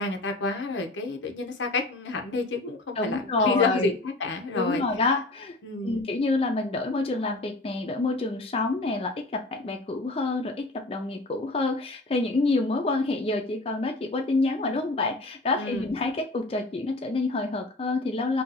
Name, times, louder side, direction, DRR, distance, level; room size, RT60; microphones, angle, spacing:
voice 1, 0.0-4.8 5.6-6.1 15.6-15.9, left 3 dB, 80° left, 5 dB, 0.6 m, -29 dB
voice 2, 3.0-3.9 4.5-5.6 5.8-18.4, left 3 dB, 30° left, 4 dB, 0.3 m, -27 dB
2.6 x 2.3 x 3.9 m, 0.40 s
head